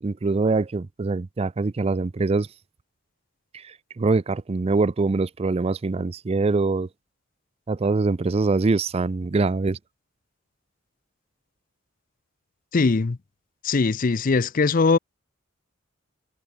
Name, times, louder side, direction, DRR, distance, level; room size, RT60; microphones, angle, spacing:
voice 1, 0.0-2.5 3.5-6.9 7.7-9.8, right 3 dB, 30° right, 0.4 m, -24 dB
voice 2, 12.7-13.2 13.6-15.0, left 4 dB, 45° left, 0.5 m, -20 dB
head